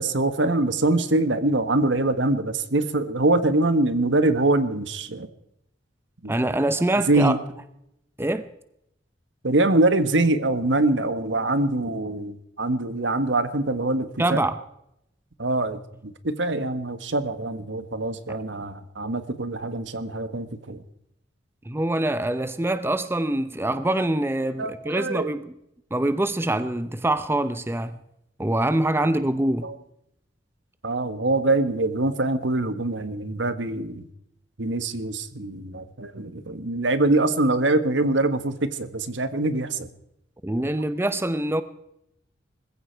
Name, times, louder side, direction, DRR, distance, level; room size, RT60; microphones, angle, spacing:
voice 1, 0.0-5.3 6.2-6.3 7.1-7.4 9.4-14.4 15.4-20.8 24.6-25.3 29.6-29.8 30.8-34.1 34.6-39.9, right 2 dB, 70° right, 1.5 m, -24 dB
voice 2, 6.3-7.4 8.2-8.5 14.2-14.5 18.3-18.4 21.7-25.5 25.9-28.0 28.4-29.7 40.4-41.6, right 1 dB, 10° right, 0.7 m, -24 dB
20.0 x 15.5 x 4.6 m
head